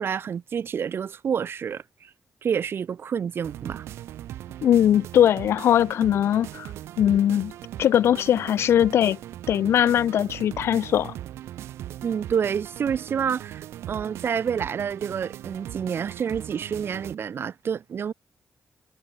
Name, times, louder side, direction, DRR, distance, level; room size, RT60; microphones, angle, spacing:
voice 1, 0.0-2.1 2.4-3.9 12.0-18.1, right 7 dB, 65° right, 1.9 m, -28 dB
sound 1, 3.4-17.1, right 12 dB, 90° right, 3.7 m, -39 dB
voice 2, 4.6-6.7 7.0-7.5 7.8-9.2 9.5-11.1, left 10 dB, 80° left, 0.9 m, -20 dB
cardioid pair, 60°, 4 cm